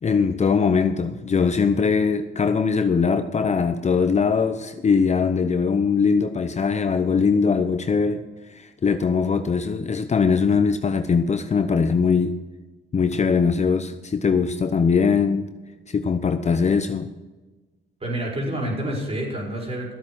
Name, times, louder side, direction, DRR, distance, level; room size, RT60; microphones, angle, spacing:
voice 1, 0.0-8.2 8.5-12.3 12.9-15.5 15.9-17.1, left 5 dB, 35° left, 9 dB, 0.8 m, -21 dB
voice 2, 18.0-19.9, right 1 dB, 30° right, -2 dB, 5.3 m, -28 dB
14.0 x 8.4 x 6.2 m, 1.2 s
cardioid pair, 90°, 20 cm